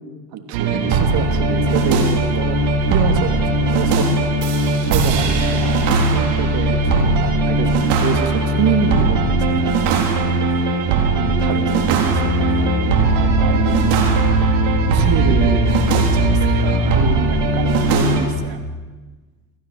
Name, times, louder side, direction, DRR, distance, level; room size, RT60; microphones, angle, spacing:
voice 1, 0.3-2.6 2.9-3.4 3.7-4.2 4.5-7.7 8.0-9.8 11.2-14.0 14.9-18.6, right 7 dB, 55° right, 5 dB, 3.3 m, -26 dB
sound 1, 0.5-18.2, right 3 dB, 70° right, 4.5 m, -18 dB
sound 2, 12.1-17.1, left 7 dB, 20° left, 6.9 m, -23 dB
25.5 x 15.5 x 8.0 m, 1.3 s
hypercardioid pair, 85°, 44 cm